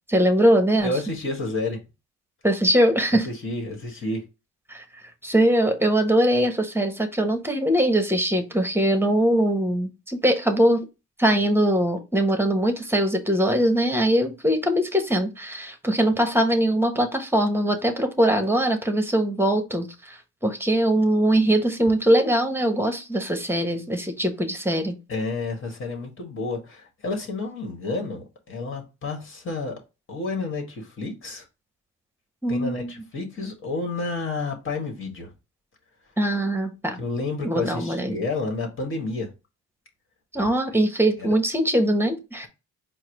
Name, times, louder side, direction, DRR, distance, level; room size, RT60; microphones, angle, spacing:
voice 1, 0.1-0.9 2.4-3.3 4.7-4.8 5.2-10.8 11.2-25.0 32.4-32.9 36.2-37.0 37.4-38.2 40.3-42.5, right 1 dB, 10° right, 1.0 m, -22 dB
voice 2, 0.8-1.8 3.2-4.2 25.1-29.7 30.1-31.4 32.5-35.3 37.0-39.3 41.2-41.3, left 3 dB, 45° left, 1.7 m, -30 dB
4.7 x 2.2 x 4.5 m
cardioid pair, 90°, 30 cm